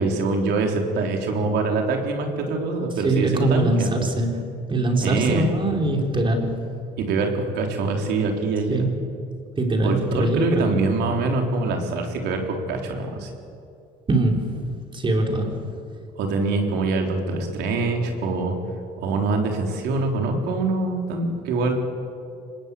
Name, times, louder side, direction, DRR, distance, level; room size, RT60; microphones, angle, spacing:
voice 1, 0.0-4.1 5.0-5.5 7.0-8.9 9.8-12.4 12.7-13.3 16.2-18.5 19.0-21.7, right 3 dB, 85° right, 2 dB, 4.2 m, -24 dB
voice 2, 3.0-4.4 4.7-6.6 8.7-8.9 9.6-10.7 14.1-14.5 14.9-15.6, right 2 dB, 30° right, 2 dB, 4.4 m, -22 dB
25.5 x 20.0 x 8.6 m, 2.5 s
cardioid pair, 110°, 17 cm